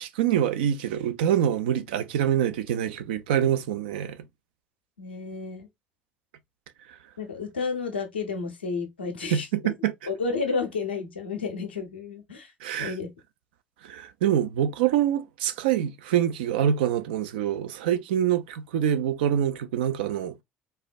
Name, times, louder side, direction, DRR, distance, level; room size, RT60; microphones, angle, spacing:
voice 1, 0.0-4.2 6.9-7.0 9.3-9.9 12.6-12.9 13.8-20.4, right 10 dB, 75° right, 0.4 m, -25 dB
voice 2, 5.0-5.7 7.2-9.5 10.1-12.5 12.8-13.1, left 4 dB, 90° left, 0.6 m, -31 dB
3.4 x 2.1 x 2.5 m
hypercardioid pair, 60°, 5 cm